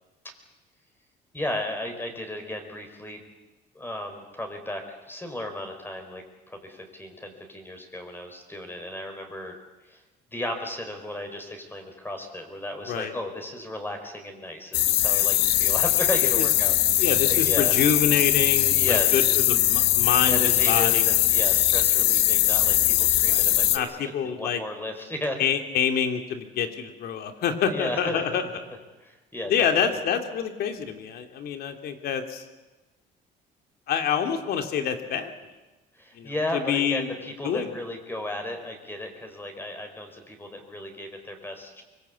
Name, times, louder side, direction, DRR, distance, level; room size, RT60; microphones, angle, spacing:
voice 1, 1.3-3.2 3.7-6.2 6.5-9.5 9.8-10.0 10.3-17.8 18.6-19.5 20.2-24.0 24.2-25.4 27.6-28.6 29.0-30.0 35.9-41.8, left 1 dB, 10° left, 4 dB, 4.5 m, -34 dB
sound 1, 14.7-23.8, left 14 dB, 85° left, 1.5 m, -21 dB
voice 2, 17.0-21.1 23.3-23.4 23.7-24.6 25.4-28.5 29.5-32.4 33.9-35.3 36.1-37.1 37.4-37.7, left 7 dB, 70° left, 6 dB, 2.8 m, -27 dB
24.5 x 21.5 x 8.4 m, 1.1 s
cardioid pair, 110°, 17 cm